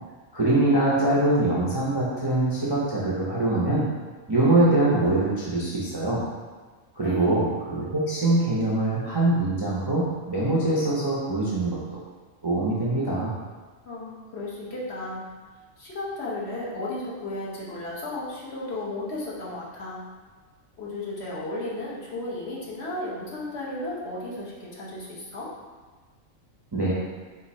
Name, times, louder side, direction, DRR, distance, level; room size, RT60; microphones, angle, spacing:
voice 1, 0.3-3.9 4.3-6.2 6.9-12.0 12.4-13.3 26.7-26.9, right 2 dB, 30° right, -8 dB, 0.5 m, -23 dB
voice 2, 7.0-7.3 13.8-15.3 15.8-20.0 20.8-25.5, left 2 dB, 55° left, -6 dB, 1.2 m, -34 dB
4.5 x 2.6 x 4.1 m, 1.4 s
omnidirectional pair, 1.4 m